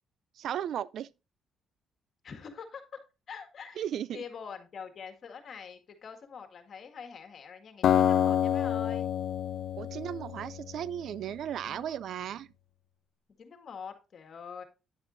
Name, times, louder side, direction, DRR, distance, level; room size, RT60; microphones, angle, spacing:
voice 1, 0.4-1.1 3.8-4.2 9.8-12.5, right 10 dB, 70° right, 0.3 m, -35 dB
voice 2, 2.2-3.0 3.3-3.8 4.1-9.1 11.6-12.0 13.4-14.6, left 6 dB, 55° left, 1.8 m, -45 dB
Acoustic guitar, 7.8-11.0, left 10 dB, 70° left, 0.6 m, -27 dB
9.9 x 7.9 x 2.6 m
cardioid pair, 90°, 0 cm